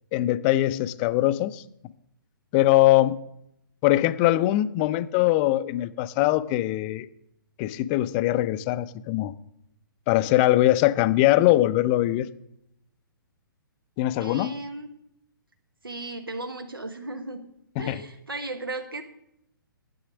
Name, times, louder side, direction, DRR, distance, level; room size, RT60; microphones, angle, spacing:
voice 1, 0.1-1.6 2.5-3.2 3.8-7.1 7.6-9.3 10.1-12.3 14.0-14.5 17.8-18.0, left 15 dB, 25° left, 15 dB, 0.5 m, -22 dB
voice 2, 14.2-14.9 15.8-17.4 17.8-19.0, right 2 dB, 80° right, 6 dB, 1.1 m, -35 dB
11.5 x 7.9 x 6.1 m, 0.78 s
figure-of-eight pair, 125°, 12 cm